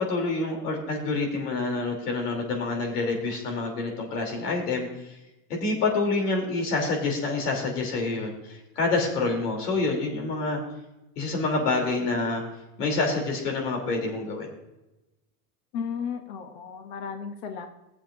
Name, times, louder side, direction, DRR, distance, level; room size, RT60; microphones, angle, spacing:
voice 1, 0.0-4.9 5.5-10.6 11.2-12.4 12.8-14.5, left 3 dB, 85° left, 1 dB, 3.0 m, -27 dB
voice 2, 15.7-17.7, left 6 dB, 35° left, 6 dB, 0.6 m, -34 dB
20.5 x 7.2 x 2.5 m, 0.99 s
supercardioid pair, 175°, 46 cm